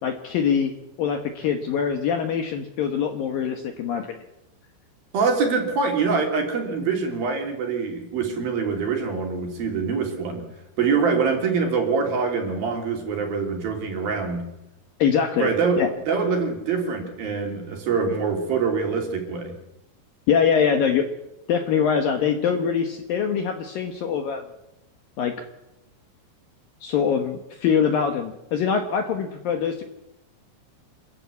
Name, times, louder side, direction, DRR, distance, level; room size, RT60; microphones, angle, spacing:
voice 1, 0.0-0.7 1.0-4.1 15.0-15.5 15.8-15.9 20.3-21.1 21.5-24.4 25.2-25.3 26.8-29.8, left 7 dB, 65° left, 6 dB, 2.5 m, -23 dB
voice 2, 5.1-10.4 10.8-14.5 15.4-19.6, right 5 dB, 55° right, 3 dB, 4.5 m, -24 dB
27.0 x 14.5 x 8.3 m, 0.93 s
omnidirectional pair, 5.4 m